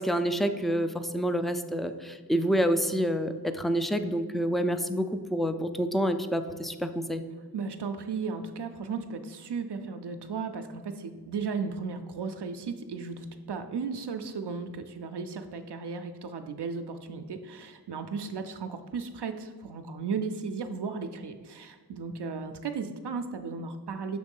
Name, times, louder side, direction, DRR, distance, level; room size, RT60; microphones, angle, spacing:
voice 1, 0.0-7.2, equal, ahead, 9 dB, 0.3 m, -28 dB
voice 2, 7.5-24.2, right 5 dB, 85° right, 6 dB, 0.5 m, -35 dB
6.6 x 3.1 x 5.3 m, 1.5 s
wide cardioid pair, 45°, 40 cm